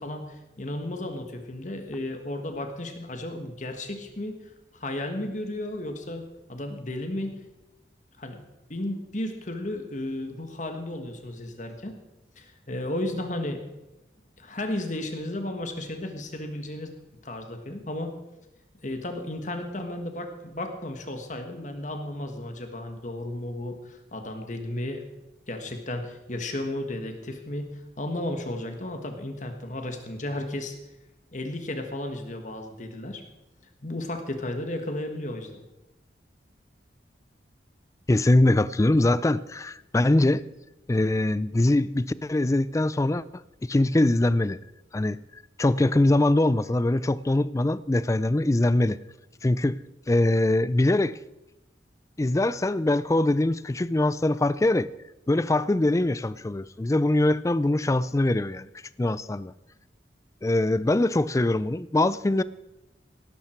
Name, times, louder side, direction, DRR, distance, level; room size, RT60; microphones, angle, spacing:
voice 1, 0.0-4.4 4.7-7.4 8.2-8.4 8.7-11.9 12.4-13.6 14.4-16.9 17.2-18.1 18.8-25.0 25.5-27.7 28.0-30.8 31.3-33.2 33.8-35.6, left 1 dB, 45° left, 1.6 m, -34 dB
voice 2, 38.1-40.4 40.9-43.2 43.6-44.6 44.9-49.0 49.4-51.2 52.2-54.9 55.3-58.7 59.0-59.5 60.4-62.4, left 2 dB, 20° left, 0.4 m, -23 dB
18.0 x 11.5 x 4.5 m
head